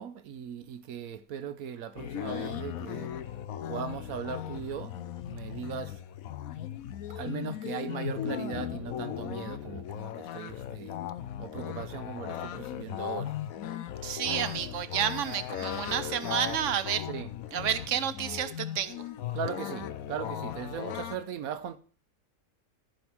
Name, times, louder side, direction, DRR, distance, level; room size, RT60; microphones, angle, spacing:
voice 1, 0.0-3.1 3.7-5.0 5.3-6.0 7.1-11.0 11.4-13.4 17.1-17.3 19.3-21.8, right 7 dB, 80° right, 1.2 m, -38 dB
sound 1, 2.0-21.2, left 10 dB, 80° left, 1.1 m, -37 dB
voice 2, 14.0-17.1 17.5-19.1, right 9 dB, 65° right, 1.1 m, -30 dB
14.0 x 5.3 x 5.9 m
omnidirectional pair, 1.5 m